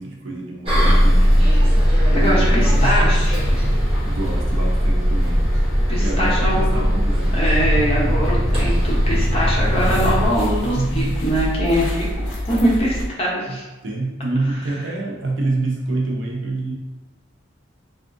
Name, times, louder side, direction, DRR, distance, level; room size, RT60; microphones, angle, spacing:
voice 1, 0.0-1.5 2.1-3.0 4.0-5.5 6.0-7.4 10.6-11.2 13.5-13.6 13.8-16.7, right 2 dB, 70° right, -1 dB, 0.6 m, -27 dB
sound 1, 0.7-13.1, equal, 70° left, 0.7 m, -27 dB
Bus, 0.7-10.3, equal, 30° right, 0.9 m, -18 dB
voice 2, 2.1-3.4 5.9-6.8 7.3-12.1 12.5-13.7, equal, 30° left, -5 dB, 0.8 m, -22 dB
3.5 x 2.4 x 2.5 m, 1.2 s
head